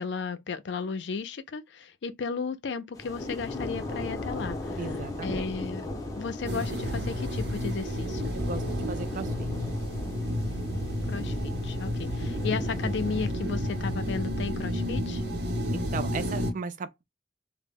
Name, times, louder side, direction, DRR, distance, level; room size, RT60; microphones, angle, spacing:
voice 1, 0.0-4.9 5.2-8.3 11.1-15.2, left 5 dB, 70° left, 0.4 m, -34 dB
sound 1, 2.9-13.3, left 1 dB, 20° left, 0.5 m, -37 dB
voice 2, 4.8-5.5 8.3-9.5 15.7-17.0, right 4 dB, 45° right, 0.3 m, -36 dB
sound 2, 6.4-16.5, left 1 dB, 60° right, 0.7 m, -31 dB
2.1 x 2.0 x 3.4 m
head